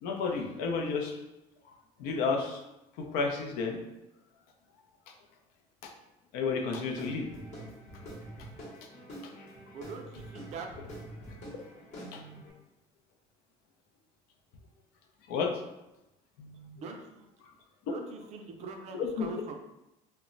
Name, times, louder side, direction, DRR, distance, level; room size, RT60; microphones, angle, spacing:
voice 1, 0.0-1.2 1.6-1.7 2.0-2.6 3.0-3.8 5.8-5.9 6.3-7.3 8.8-8.9 9.2-9.5 12.0-12.5 15.3-15.6 16.4-16.8 19.0-19.3, left 4 dB, 80° left, 3 dB, 0.5 m, -32 dB
Guitar / Drum, 6.9-12.5, right 1 dB, 50° left, 0.9 m, -46 dB
voice 2, 9.7-10.7 16.8-17.3 17.9-19.6, right 4 dB, 45° right, 3 dB, 0.4 m, -42 dB
2.1 x 2.0 x 3.7 m, 0.91 s
cardioid pair, 130°, 15 cm